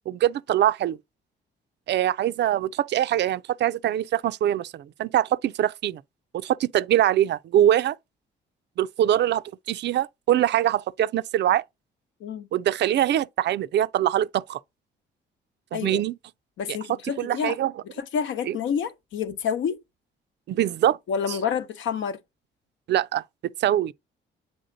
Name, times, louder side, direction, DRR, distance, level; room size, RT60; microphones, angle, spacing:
voice 1, 0.1-1.0 1.9-6.0 6.3-8.0 8.8-11.6 12.5-14.6 15.7-16.1 16.7-16.8 17.2-17.7 18.5-18.6 20.5-21.0 22.9-23.2 23.6-23.9, right 12 dB, 60° right, 0.4 m, -23 dB
voice 2, 16.6-17.6 18.0-19.8 21.1-22.2, left 7 dB, 75° left, 0.9 m, -28 dB
7.9 x 3.5 x 3.9 m
cardioid pair, 90°, 20 cm